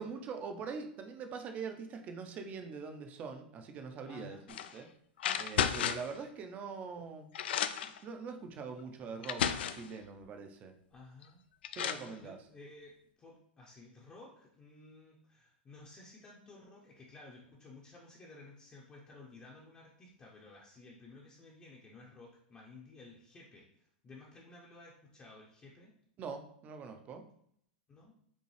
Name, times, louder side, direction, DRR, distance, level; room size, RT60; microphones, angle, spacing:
voice 1, 0.0-4.4 4.7-4.9 5.4-7.3 7.8-9.4 9.7-10.7 11.7-12.4 26.2-27.2, right 5 dB, 25° right, 6 dB, 0.5 m, -43 dB
voice 2, 4.1-4.5 10.9-11.4 12.0-23.7 24.0-25.9 27.9-28.1, left 2 dB, 20° left, -3 dB, 0.6 m, -55 dB
sound 1, 4.5-4.7 5.2-6.1 7.0-7.1 7.3-8.0 8.8-8.9 9.2-9.9 11.2-11.3 11.6-12.1, left 9 dB, 85° left, 0.3 m, -33 dB
5.2 x 2.3 x 3.2 m, 0.68 s
supercardioid pair, 145°, 6 cm